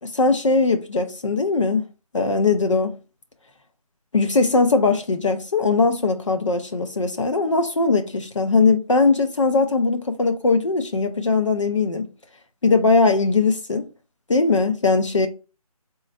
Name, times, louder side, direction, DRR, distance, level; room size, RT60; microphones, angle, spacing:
voice 1, 0.0-1.9 2.1-3.0 4.1-12.1 12.6-13.9 14.3-15.3, left 3 dB, 50° left, 0.7 m, -20 dB
3.9 x 3.4 x 4.1 m
figure-of-eight pair, 170°, 20 cm